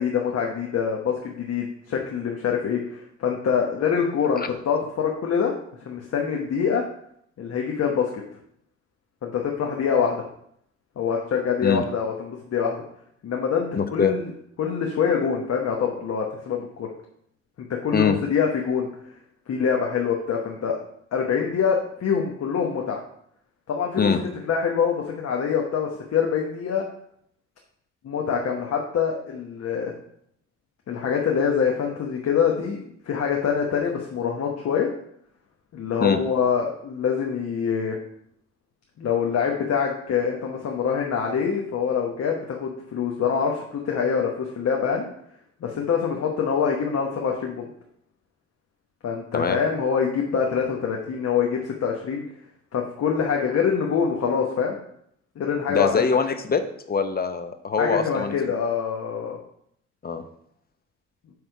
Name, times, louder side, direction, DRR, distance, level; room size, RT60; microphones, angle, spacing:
voice 1, 0.0-5.5 5.8-6.8 7.4-8.1 9.2-10.2 11.0-12.8 13.2-14.3 14.6-16.9 17.8-18.9 19.5-20.8 21.1-23.0 23.7-24.1 24.4-26.8 28.0-29.9 30.9-32.8 33.0-34.9 35.7-37.9 39.0-45.1 45.6-47.7 49.0-52.2 52.7-54.8 55.4-56.0 57.8-59.4, left 6 dB, 55° left, 0 dB, 1.1 m, -25 dB
voice 2, 13.7-14.1 17.9-18.2 24.0-24.2 36.0-36.2 49.3-49.6 55.7-56.6 56.9-58.3 60.0-60.2, left 5 dB, 30° left, 9 dB, 0.7 m, -23 dB
8.0 x 3.5 x 4.6 m, 0.69 s
cardioid pair, 90°, 30 cm